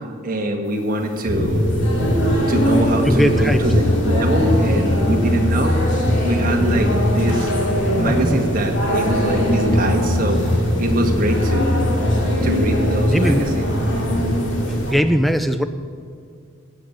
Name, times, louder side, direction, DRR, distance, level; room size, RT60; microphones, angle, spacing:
voice 1, 0.2-1.6 2.5-5.8 6.2-7.5 7.9-11.7 12.4-13.7, right 1 dB, 40° right, 2 dB, 1.5 m, -23 dB
sound 1, 0.9-14.9, equal, 60° left, 2.4 m, -25 dB
sound 2, 1.3-15.0, left 1 dB, 75° left, 2.8 m, -21 dB
voice 2, 3.0-3.6 8.1-8.4 13.1-13.5 14.9-15.6, equal, ahead, 10 dB, 0.4 m, -19 dB
15.5 x 8.7 x 7.2 m, 2.3 s
head